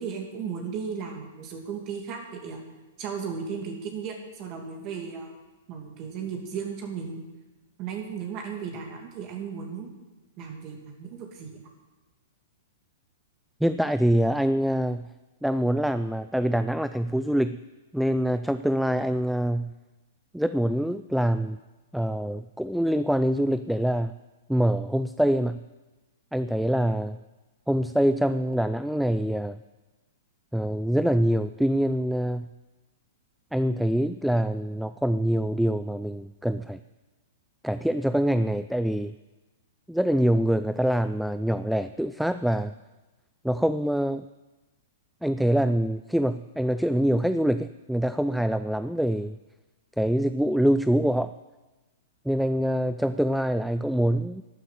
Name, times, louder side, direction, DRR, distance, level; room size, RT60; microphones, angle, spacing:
voice 1, 0.0-2.6 3.0-5.3 5.7-7.2 7.8-10.0 10.4-11.6, right 6 dB, 40° right, 2 dB, 2.5 m, -35 dB
voice 2, 13.6-15.1 15.4-17.6 17.9-19.7 20.3-21.6 21.9-24.2 24.5-25.6 26.3-27.2 27.7-29.6 30.5-32.5 33.5-36.8 37.6-39.1 39.9-42.7 43.4-44.2 45.2-49.4 50.0-51.3 52.3-54.4, equal, ahead, 12 dB, 0.3 m, -25 dB
12.0 x 9.1 x 7.5 m, 1.2 s
hypercardioid pair, 115°, 0 cm